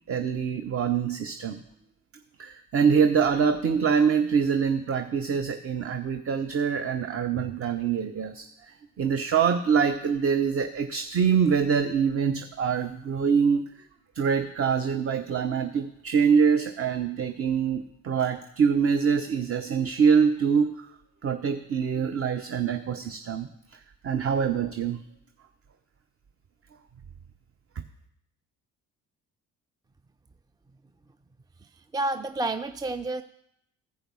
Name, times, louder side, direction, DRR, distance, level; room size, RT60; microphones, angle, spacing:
voice 1, 0.0-1.6 2.4-13.6 14.1-20.9 21.2-25.0, right 6 dB, 35° right, 7 dB, 0.7 m, -25 dB
voice 2, 31.6-33.2, right 2 dB, 10° right, 9 dB, 0.4 m, -30 dB
14.5 x 5.1 x 6.2 m, 0.76 s
hypercardioid pair, 50°, 39 cm